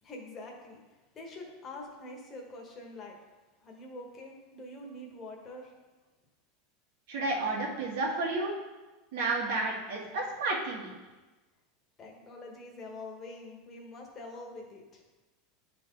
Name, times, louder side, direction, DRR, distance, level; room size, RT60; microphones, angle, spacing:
voice 1, 0.0-0.8 1.1-3.2 3.6-5.7 12.0-15.0, left 2 dB, 25° left, 0 dB, 1.3 m, -45 dB
voice 2, 7.1-8.5 9.1-10.9, right 2 dB, 70° right, -2 dB, 1.7 m, -31 dB
10.0 x 3.8 x 3.8 m, 1.2 s
supercardioid pair, 155°, 0 cm